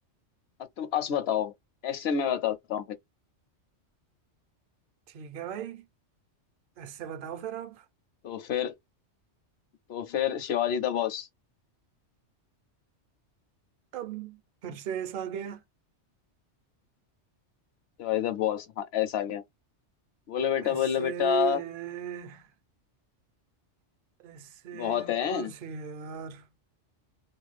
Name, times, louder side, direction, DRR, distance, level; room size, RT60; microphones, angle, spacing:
voice 1, 0.8-1.5 1.8-2.9 8.2-8.7 9.9-11.3 18.0-19.4 20.3-21.6 24.7-25.5, left 9 dB, 65° left, 0.8 m, -28 dB
voice 2, 5.1-5.8 6.8-7.8 13.9-15.6 20.6-22.5 24.2-26.5, right 9 dB, 60° right, 0.6 m, -37 dB
2.5 x 2.2 x 3.1 m
omnidirectional pair, 1.2 m